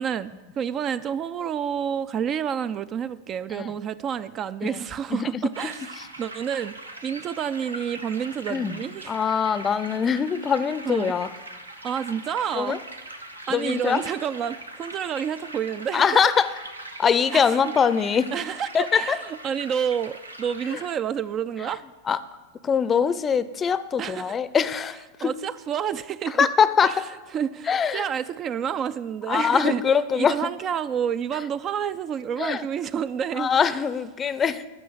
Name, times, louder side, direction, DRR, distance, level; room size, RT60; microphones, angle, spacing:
voice 1, 0.0-6.7 7.0-9.2 10.9-11.2 11.8-12.8 13.5-16.1 17.3-17.5 18.3-21.8 24.0-24.4 25.2-26.5 26.8-27.0 27.3-29.8 30.2-33.5, right 8 dB, 30° right, 0.3 m, -29 dB
voice 2, 5.1-5.4 8.5-8.8 9.1-11.3 12.6-12.8 13.5-14.0 15.9-16.5 17.0-18.3 18.7-19.2 22.1-22.2 22.6-25.3 26.4-27.1 27.7-28.0 29.3-30.5 32.4-32.7 33.4-34.6, left 7 dB, 20° left, 0.5 m, -23 dB
sound 1, 5.5-20.9, right 1 dB, 80° right, 1.0 m, -41 dB
12.0 x 6.2 x 7.8 m
figure-of-eight pair, 90°, 0 cm